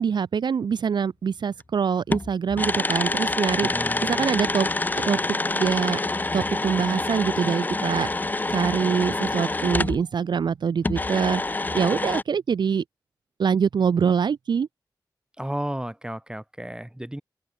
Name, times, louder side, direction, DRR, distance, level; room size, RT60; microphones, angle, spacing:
voice 1, 0.0-3.7 4.1-4.7 5.0-5.2 5.5-6.0 6.3-8.1 8.5-11.4 11.7-12.8 13.4-14.7, right 6 dB, 70° right, 0.4 m, -24 dB
sound 1, 1.6-1.7 2.1-10.0 10.8-12.2, left 2 dB, 20° left, 0.4 m, -26 dB
voice 2, 3.6-4.3 15.4-17.2, right 1 dB, 10° right, 5.5 m, -33 dB
cardioid pair, 50°, 8 cm